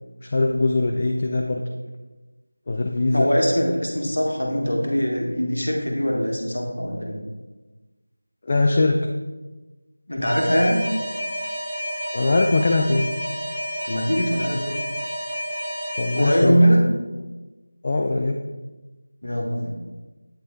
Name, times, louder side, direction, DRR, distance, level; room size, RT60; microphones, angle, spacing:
voice 1, 0.2-1.6 2.7-3.3 8.4-9.1 12.1-13.1 16.0-16.6 17.8-18.4, left 2 dB, 30° left, 2 dB, 0.3 m, -21 dB
voice 2, 3.1-7.2 10.1-10.8 13.8-14.8 16.1-16.8 19.2-19.8, equal, 70° left, 0 dB, 1.3 m, -22 dB
Alarm, 10.2-16.4, equal, 15° right, 2.0 m, -30 dB
8.0 x 3.2 x 3.6 m, 1.2 s
figure-of-eight pair, 170°, 0 cm